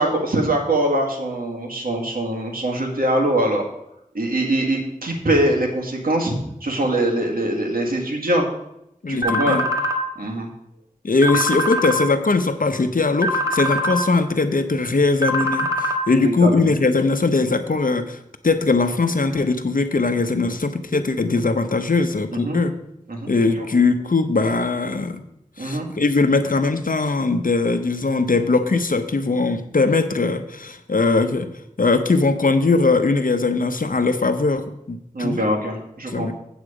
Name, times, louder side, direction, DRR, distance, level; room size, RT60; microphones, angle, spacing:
voice 1, 0.0-3.6 4.1-8.5 9.1-9.6 10.1-10.5 16.2-16.7 22.3-22.6 23.1-23.3 25.6-25.9 35.1-36.3, right 1 dB, 85° right, 0 dB, 1.8 m, -22 dB
voice 2, 9.0-9.7 11.0-18.2 18.4-22.8 23.3-25.2 25.6-31.5 31.8-35.4 36.1-36.3, left 3 dB, 70° left, 9 dB, 0.8 m, -20 dB
sound 1, 9.2-10.0 11.2-12.0 13.2-14.0 15.2-16.0, left 1 dB, 25° right, 1.5 m, -22 dB
8.2 x 8.0 x 5.0 m, 0.80 s
wide cardioid pair, 55°, 15 cm